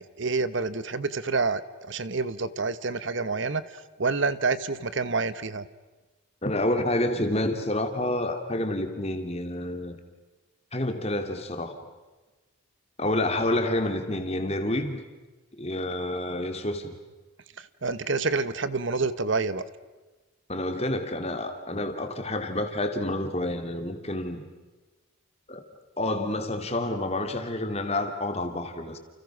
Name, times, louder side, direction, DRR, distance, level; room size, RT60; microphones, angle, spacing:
voice 1, 0.0-5.6 17.6-19.6, right 4 dB, 60° right, 15 dB, 1.0 m, -28 dB
voice 2, 6.4-10.0 10.7-11.8 13.0-15.0 15.6-16.9 20.5-24.4 25.5-25.6 26.0-29.0, left 1 dB, 30° left, 6 dB, 2.6 m, -28 dB
30.0 x 29.5 x 6.2 m, 1.2 s
head